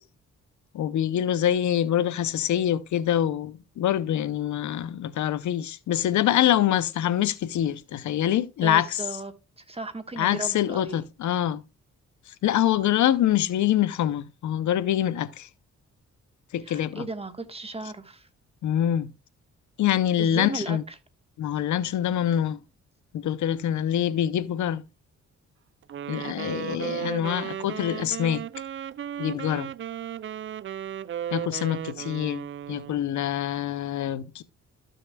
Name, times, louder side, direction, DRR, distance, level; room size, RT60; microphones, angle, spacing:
voice 1, 0.7-9.0 10.2-11.6 12.3-15.5 16.5-17.0 18.6-19.1 19.8-20.8 21.4-22.6 23.1-24.8 26.1-28.4 29.2-29.7 31.3-34.4, left 11 dB, 75° left, 0.6 m, -25 dB
voice 2, 8.6-11.0 16.6-18.3 20.2-21.0 26.7-27.5, right 2 dB, 20° right, 1.3 m, -36 dB
Wind instrument woodwind instrument, 25.9-33.1, right 10 dB, 45° right, 0.4 m, -35 dB
13.5 x 6.5 x 2.2 m
cardioid pair, 85°, 29 cm